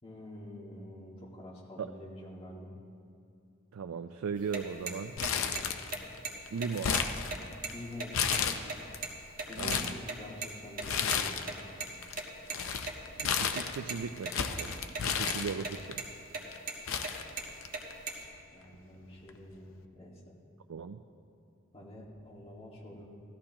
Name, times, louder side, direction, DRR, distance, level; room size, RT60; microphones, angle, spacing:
voice 1, 0.0-2.7 5.3-5.7 7.7-8.2 9.5-9.9 10.2-11.5 18.5-20.4 21.7-23.1, left 1 dB, 25° left, -4 dB, 1.9 m, -47 dB
voice 2, 3.7-5.2 6.5-6.9 9.6-10.0 13.2-16.1 20.7-21.0, right 6 dB, 80° right, 8 dB, 0.4 m, -37 dB
sound 1, 4.4-9.5 9.7-9.8 10.1-10.2 10.4-10.5 10.8-10.9 11.1-11.2 11.5-12.6 12.8-13.3 13.6-14.3 14.6-15.0 15.3-15.7 16.0-16.1 16.3-16.8 17.0-18.2, right 4 dB, 40° right, 1.4 m, -37 dB
Crumpling crinkling, 5.2-6.2 6.5-7.7 8.1-9.0 9.4-10.0 10.8-11.6 11.9-15.9 16.5-16.6 16.9-17.9 18.2-18.3 19.3-19.5, left 7 dB, 70° left, 0.6 m, -32 dB
15.5 x 13.5 x 2.9 m, 2.5 s
head